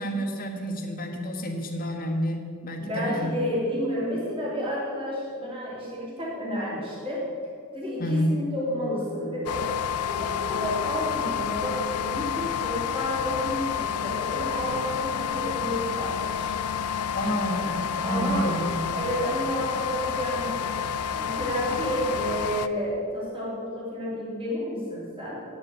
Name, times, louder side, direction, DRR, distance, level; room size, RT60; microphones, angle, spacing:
voice 1, 0.0-3.3 8.0-8.3 17.1-18.8, equal, 40° left, 3 dB, 1.4 m, -29 dB
voice 2, 2.8-7.3 7.7-9.7 10.0-16.6 18.0-18.5 19.0-20.8 21.2-25.4, equal, 25° right, -6 dB, 3.0 m, -31 dB
sound 1, 9.5-22.7, left 8 dB, 80° left, 0.5 m, -29 dB
9.5 x 7.7 x 7.8 m, 2.3 s
head